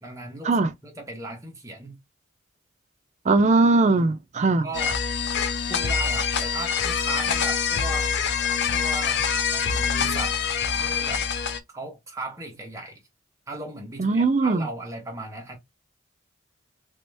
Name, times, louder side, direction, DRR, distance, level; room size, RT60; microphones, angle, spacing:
voice 1, 0.0-2.0 4.6-5.0 5.7-8.1 8.7-10.4 10.7-11.3 11.7-13.0 13.5-15.6, right 2 dB, 15° right, 1.1 m, -37 dB
voice 2, 3.3-4.7 14.0-14.7, right 3 dB, 35° right, 0.4 m, -20 dB
sound 1, 4.7-11.6, left 6 dB, 60° left, 0.5 m, -25 dB
3.0 x 2.9 x 3.3 m
head